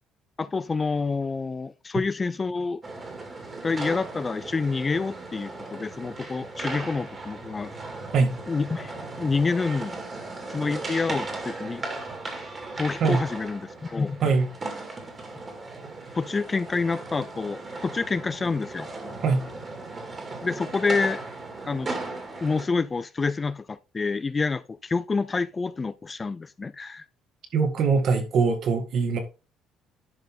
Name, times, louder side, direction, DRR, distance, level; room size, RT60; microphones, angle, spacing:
voice 1, 0.4-2.8 3.6-7.7 8.5-10.0 10.5-11.8 12.8-14.2 16.1-18.9 20.4-21.2 21.7-22.0 22.4-27.0, left 4 dB, 20° left, 0.4 m, -28 dB
sound 1, 2.8-22.7, right 3 dB, 25° right, 2.1 m, -37 dB
voice 2, 27.5-29.2, right 4 dB, 55° right, 1.9 m, -22 dB
11.0 x 5.2 x 3.7 m
cardioid pair, 140°, 0 cm